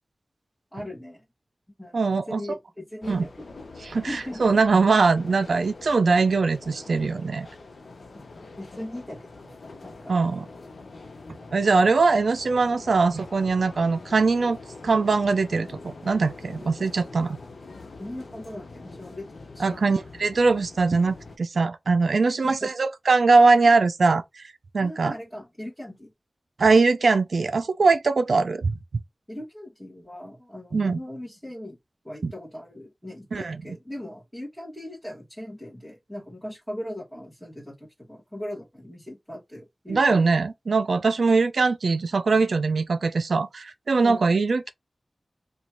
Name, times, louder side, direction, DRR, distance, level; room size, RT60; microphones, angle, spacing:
voice 1, 0.7-1.2 1.8-3.4 4.1-4.4 8.6-10.1 18.0-19.9 22.4-22.7 24.8-26.1 29.3-31.8 32.0-40.2 44.0-44.2, left 1 dB, ahead, 1.5 m, -39 dB
voice 2, 1.9-2.4 3.1-3.3 3.8-7.5 10.1-10.5 11.5-14.6 14.8-17.4 19.6-25.1 26.6-28.8 30.7-31.0 32.2-32.3 33.3-33.6 39.9-44.7, right 4 dB, 85° right, 0.4 m, -21 dB
sound 1, 3.0-21.4, left 3 dB, 75° left, 0.7 m, -44 dB
3.0 x 2.3 x 4.2 m
wide cardioid pair, 55°, 0 cm